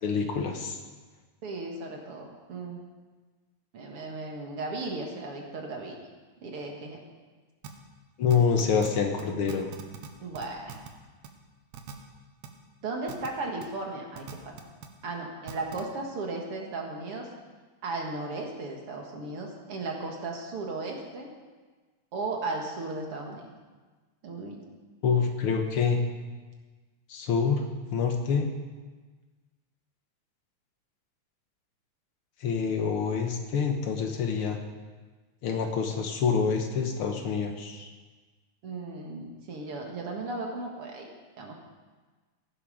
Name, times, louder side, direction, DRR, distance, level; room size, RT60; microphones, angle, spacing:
voice 1, 0.0-0.8 8.2-9.7 25.0-26.0 27.1-27.6 27.9-28.5 32.4-34.6 35.4-37.9, left 6 dB, 60° left, 4 dB, 1.6 m, -26 dB
voice 2, 1.4-2.8 3.7-6.0 6.4-7.0 10.2-10.8 12.8-14.5 15.0-17.3 17.8-21.3 22.1-23.5 24.2-24.6 38.6-41.1 41.4-41.5, right 3 dB, 50° right, 1 dB, 2.3 m, -36 dB
glitch noise, 7.6-7.7 8.3-8.9 9.2-9.3 9.5-10.1 10.3-10.9 11.2-11.3 11.7-11.9 12.4-12.5 13.1-13.3 13.6-13.7 14.2-14.9 15.5-15.8, right 9 dB, 70° right, 2.2 m, -41 dB
17.5 x 10.0 x 5.0 m, 1.3 s
omnidirectional pair, 3.6 m